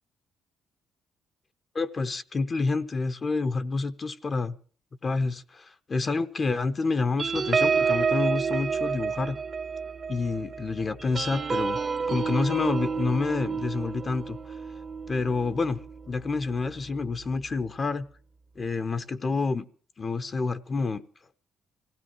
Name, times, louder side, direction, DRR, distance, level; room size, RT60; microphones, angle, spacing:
voice 1, 1.7-4.6 5.0-9.4 10.1-11.8 12.1-14.4 15.1-15.8 16.1-18.1 18.6-19.7 20.0-21.0, left 4 dB, 35° left, 10 dB, 0.8 m, -28 dB
sound 1, 7.2-16.1 16.5-16.8 17.0-17.4, right 5 dB, 40° right, 0.9 m, -29 dB
25.5 x 16.5 x 3.0 m, 0.42 s
cardioid pair, 100°, 0 cm